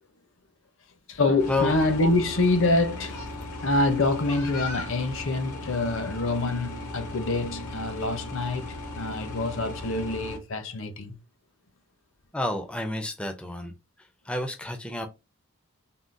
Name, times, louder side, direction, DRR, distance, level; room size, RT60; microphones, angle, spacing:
voice 1, 1.1-3.2 3.6-8.6 8.9-11.2, left 2 dB, 60° left, 0.6 m, -26 dB
sound 1, 1.4-10.4, left 2 dB, 85° left, 0.9 m, -37 dB
voice 2, 12.3-13.7 14.3-15.1, left 2 dB, 5° left, 0.3 m, -29 dB
3.6 x 2.2 x 2.5 m
head